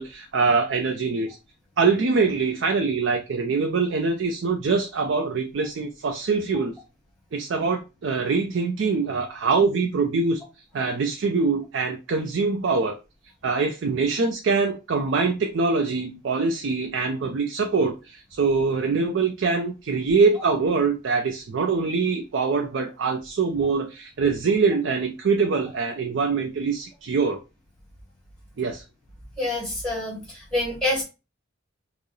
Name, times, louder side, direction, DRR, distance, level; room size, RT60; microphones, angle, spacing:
voice 1, 0.0-1.4 1.8-6.7 7.3-10.4 10.7-13.0 13.4-27.4 28.6-28.8, right 4 dB, 55° right, 0.4 m, -24 dB
voice 2, 29.4-31.0, left 1 dB, 5° left, 1.6 m, -27 dB
4.4 x 2.0 x 3.1 m
head